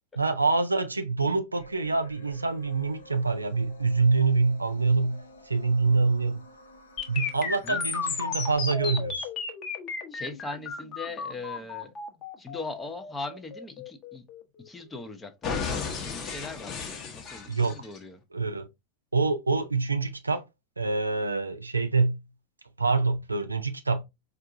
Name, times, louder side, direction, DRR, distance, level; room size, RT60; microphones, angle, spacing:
voice 1, 0.2-6.4 7.1-9.3 17.5-17.8 18.3-18.7 19.1-20.4 20.8-22.2 22.8-24.0, right 3 dB, 85° right, 0.4 m, -26 dB
sound 1, 1.6-8.6, equal, 75° left, 0.6 m, -51 dB
sound 2, 7.0-14.9 15.4-18.0, left 5 dB, 35° left, 0.9 m, -34 dB
voice 2, 10.1-11.9 12.4-14.2 14.6-18.2, left 3 dB, 15° left, 0.6 m, -40 dB
4.5 x 2.4 x 2.5 m
figure-of-eight pair, 80°, 0 cm